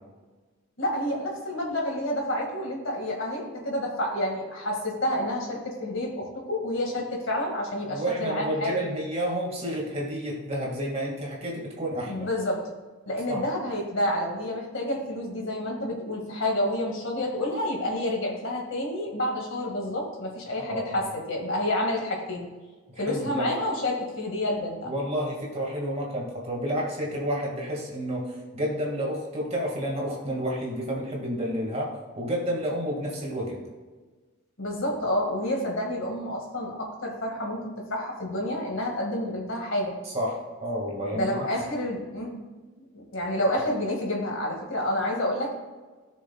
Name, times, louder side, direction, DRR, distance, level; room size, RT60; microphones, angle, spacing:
voice 1, 0.8-8.7 12.1-12.7 13.1-22.5 23.0-24.9 34.6-40.0 41.1-42.4 42.9-45.5, left 1 dB, 60° left, 0 dB, 2.1 m, -29 dB
voice 2, 7.9-12.3 13.3-13.4 20.6-21.1 22.9-23.5 24.8-33.6 40.1-41.5, equal, 30° right, -2 dB, 2.1 m, -30 dB
16.5 x 6.4 x 2.4 m, 1.3 s
head